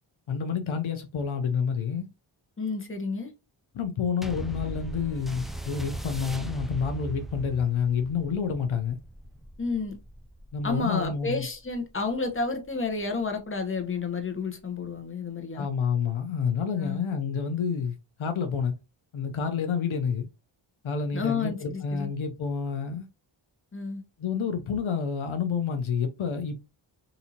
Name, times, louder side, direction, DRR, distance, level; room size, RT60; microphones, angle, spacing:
voice 1, 0.3-2.1 3.7-9.0 10.5-11.4 15.5-18.7 19.1-20.3 20.8-23.1 24.2-26.5, left 6 dB, 70° left, 0.7 m, -29 dB
voice 2, 2.6-3.3 9.6-10.0 10.6-15.7 16.8-17.1 21.1-22.1 23.7-24.0, left 4 dB, 25° left, 1.0 m, -31 dB
sound 1, 4.2-13.0 13.7-13.8, right 1 dB, ahead, 0.4 m, -39 dB
3.9 x 2.7 x 2.8 m
cardioid pair, 65°, 50 cm